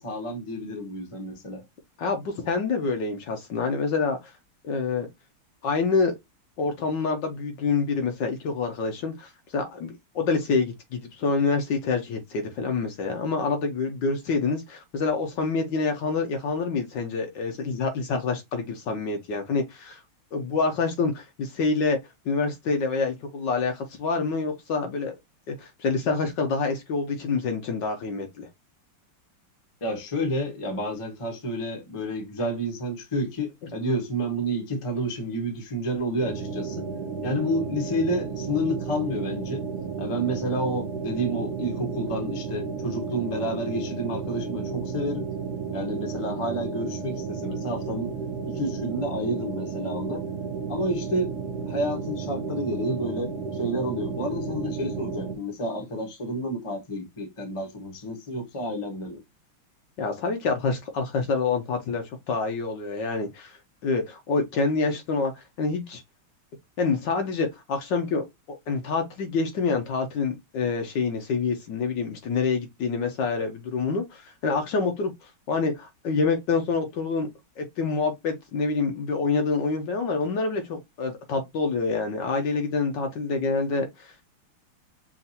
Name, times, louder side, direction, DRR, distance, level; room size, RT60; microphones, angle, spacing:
voice 1, 0.0-1.6 29.8-36.9 37.2-39.6 40.0-45.3 45.7-48.1 48.4-50.2 50.7-51.3 51.7-59.2, equal, 25° left, 0.8 m, -30 dB
voice 2, 2.0-4.3 4.6-5.1 5.6-6.2 6.6-20.0 20.3-22.0 22.2-25.1 25.5-28.5 60.0-63.6 63.8-66.0 66.8-75.1 75.5-77.3 77.6-84.1, left 4 dB, 65° left, 1.4 m, -27 dB
sound 1, 36.2-55.3, right 5 dB, 60° right, 1.2 m, -33 dB
5.6 x 2.6 x 2.7 m
omnidirectional pair, 2.4 m